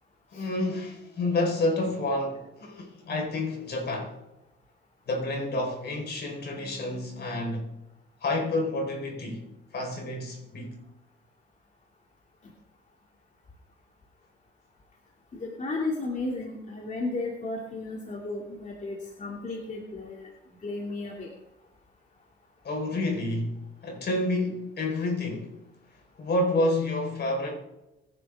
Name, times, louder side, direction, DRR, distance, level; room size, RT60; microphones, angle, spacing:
voice 1, 0.3-4.2 5.1-7.7 8.2-9.4 9.7-10.8 22.6-23.5 23.8-25.5 26.2-27.5, left 2 dB, 55° left, 4.8 m, -29 dB
voice 2, 15.3-20.3 20.6-21.3, left 2 dB, 40° left, 2.8 m, -34 dB
24.5 x 11.0 x 3.7 m
cardioid pair, 90°, 20 cm